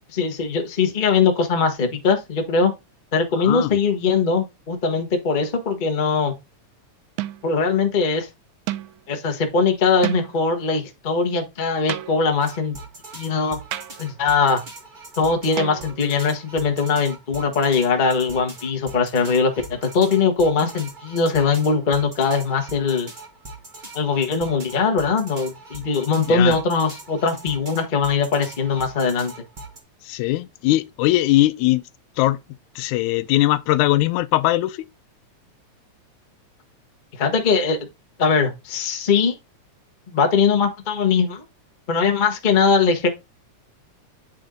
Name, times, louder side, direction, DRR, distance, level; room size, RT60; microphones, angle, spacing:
voice 1, 0.1-2.7 3.1-6.3 7.4-8.3 9.1-12.8 13.1-13.6 14.0-14.6 15.2-23.1 23.9-29.3 37.1-37.8 38.2-39.4 40.1-41.4 41.9-43.1, left 5 dB, 65° left, 0.4 m, -21 dB
voice 2, 3.4-3.8 26.3-26.6 30.1-31.8 32.2-32.4 32.8-34.8, left 16 dB, 85° left, 2.0 m, -20 dB
sound 1, 5.3-5.7 7.2-7.6 8.7-9.0 10.0-10.5 11.9-12.5 13.7-14.2 15.6-16.2, right 15 dB, 85° right, 2.0 m, -32 dB
sound 2, 12.4-29.8, right 2 dB, 50° right, 0.5 m, -41 dB
8.5 x 4.4 x 3.8 m
omnidirectional pair, 3.4 m